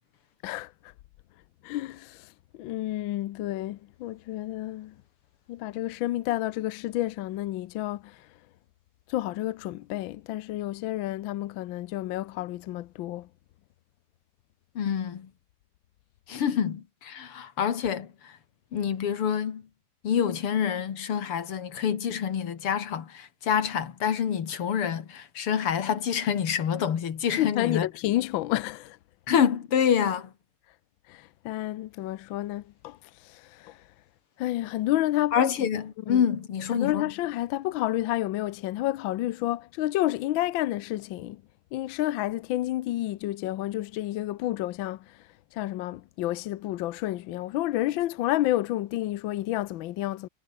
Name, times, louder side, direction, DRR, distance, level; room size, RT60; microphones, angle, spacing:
voice 1, 0.4-0.9 1.6-5.0 5.5-8.3 9.1-13.3 27.4-29.0 31.1-33.8 34.4-35.4 36.1-36.2 36.7-41.4 41.7-45.2 45.5-50.3, left 15 dB, 70° left, 1.4 m, -30 dB
voice 2, 14.8-15.3 16.3-18.4 18.7-19.6 20.0-27.9 29.3-30.3 35.3-37.1, left 8 dB, 90° left, 2.8 m, -27 dB
omnidirectional pair, 2.4 m